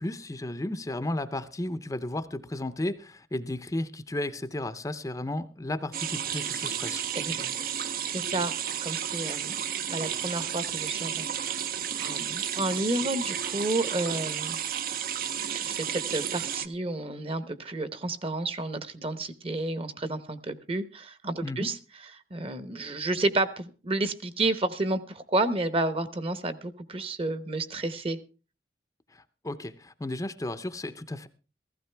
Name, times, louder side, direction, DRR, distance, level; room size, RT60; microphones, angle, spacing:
voice 1, 0.0-7.0 21.4-21.7 29.1-31.3, left 1 dB, 20° left, 11 dB, 0.6 m, -34 dB
sound 1, 5.9-16.7, right 9 dB, 55° right, 0.7 m, -32 dB
voice 2, 7.1-7.7 8.1-8.5 8.8-9.5 9.9-14.6 15.5-21.7 22.3-28.2, right 2 dB, 30° right, 12 dB, 1.0 m, -31 dB
15.5 x 15.5 x 3.4 m, 0.33 s
head